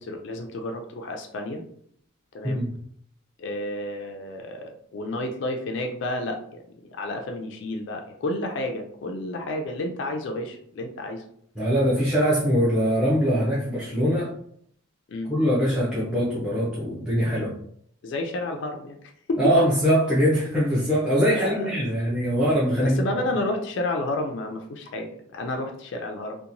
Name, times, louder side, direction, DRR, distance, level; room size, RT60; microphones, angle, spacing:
voice 1, 0.0-1.6 2.3-2.7 3.4-11.2 15.1-15.3 18.0-19.5 21.3-21.7 22.8-26.4, left 2 dB, 55° left, 4 dB, 0.3 m, -31 dB
voice 2, 11.6-14.3 15.3-17.5 19.4-23.0, equal, 5° right, -9 dB, 0.5 m, -22 dB
2.8 x 2.1 x 2.5 m, 0.66 s
head